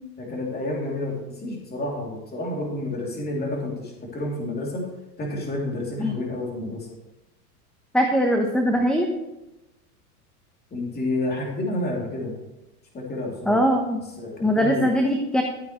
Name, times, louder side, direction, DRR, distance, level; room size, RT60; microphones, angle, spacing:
voice 1, 0.2-4.9 5.2-6.9 10.7-12.4 12.9-13.6 14.2-14.9, left 1 dB, 20° left, -1 dB, 2.9 m, -30 dB
voice 2, 7.9-9.1 13.5-14.0 14.4-15.4, equal, ahead, 3 dB, 0.9 m, -21 dB
13.0 x 9.1 x 3.1 m, 0.96 s
hypercardioid pair, 100°, 47 cm